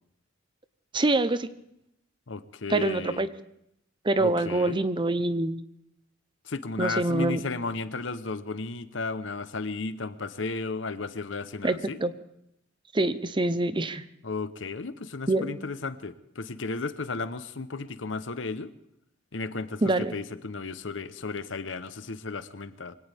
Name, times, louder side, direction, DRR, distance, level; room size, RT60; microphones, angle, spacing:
voice 1, 0.9-1.5 2.7-3.3 4.0-5.6 6.8-7.4 11.6-12.1 12.9-14.0 15.3-15.5 19.8-20.1, right 2 dB, 25° right, 13 dB, 0.7 m, -25 dB
voice 2, 2.3-3.2 4.2-4.8 6.4-12.0 14.2-18.7 19.3-23.0, left 3 dB, 75° left, 13 dB, 0.9 m, -34 dB
23.5 x 17.5 x 3.5 m, 0.78 s
head